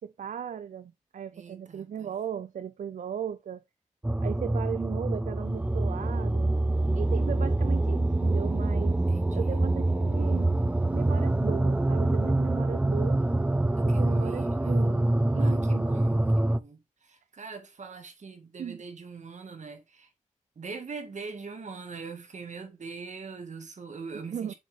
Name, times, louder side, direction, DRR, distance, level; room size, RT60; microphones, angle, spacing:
voice 1, 0.0-3.6 4.2-6.5 6.9-9.0 9.3-10.5 10.9-13.2 13.8-15.0 15.3-15.9 18.6-18.8 24.3-24.5, right 8 dB, 80° right, 0.5 m, -37 dB
voice 2, 1.3-2.1 9.1-9.6 13.7-14.9 15.4-20.1 20.6-24.5, right 4 dB, 65° right, 1.8 m, -42 dB
sound 1, 4.0-16.6, right 2 dB, 10° right, 0.4 m, -25 dB
7.1 x 5.2 x 3.5 m
wide cardioid pair, 100°, 13 cm